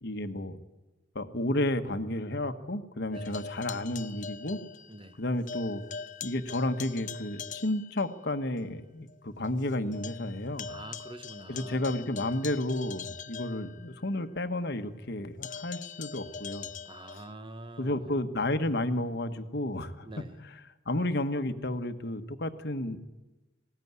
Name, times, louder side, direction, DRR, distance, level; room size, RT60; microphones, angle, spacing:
voice 1, 0.0-0.6 1.1-4.6 5.2-5.8 6.2-10.7 11.5-16.7 17.8-20.1 20.8-23.0, left 1 dB, 55° left, 8 dB, 1.4 m, -32 dB
sound 1, 3.1-5.2 5.5-8.1 8.6-8.7 9.1-9.2 9.4-14.2 15.4-17.3, left 6 dB, 40° left, 0.6 m, -42 dB
voice 2, 3.1-3.4 4.9-5.2 10.7-12.0 16.8-18.1 20.0-20.4, right 1 dB, 25° right, 10 dB, 1.2 m, -46 dB
20.0 x 18.0 x 9.6 m, 1.1 s
head